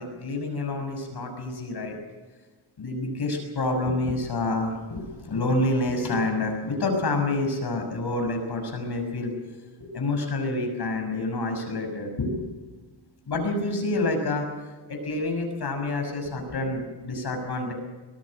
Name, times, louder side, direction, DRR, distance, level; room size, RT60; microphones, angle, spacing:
voice 1, 0.0-2.0 2.8-9.3 9.8-12.4 13.3-17.7, left 2 dB, 50° left, 4 dB, 6.2 m, -28 dB
24.0 x 19.0 x 6.5 m, 1.3 s
wide cardioid pair, 145°, 49 cm